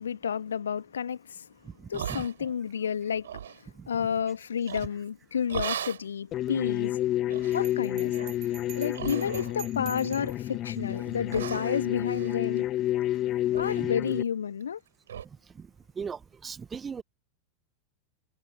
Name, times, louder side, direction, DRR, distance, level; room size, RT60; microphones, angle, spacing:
voice 1, 0.0-1.5 1.9-3.6 3.9-7.0 7.5-8.1 8.7-12.7 13.6-14.8, left 7 dB, 70° left, 2.0 m, -31 dB
voice 2, 1.6-2.3 3.7-3.9 13.8-14.0 15.2-15.7 15.9-17.0, right 6 dB, 20° right, 1.5 m, -39 dB
sound 1, 1.9-2.7 3.1-3.6 4.7-5.1 5.5-6.1 6.6-6.7 7.3-7.7 8.1-8.4 8.9-9.7 10.0-10.5 10.9-11.0 11.3-13.2 13.5-13.8 14.1-14.2 14.6-14.7 15.1-15.3, right 9 dB, 65° right, 5.2 m, -38 dB
sound 2, 6.3-14.2, left 13 dB, 35° left, 2.1 m, -30 dB
Bell, 7.5-10.5, right 22 dB, 40° right, 2.2 m, -47 dB
figure-of-eight pair, 90°, 0 cm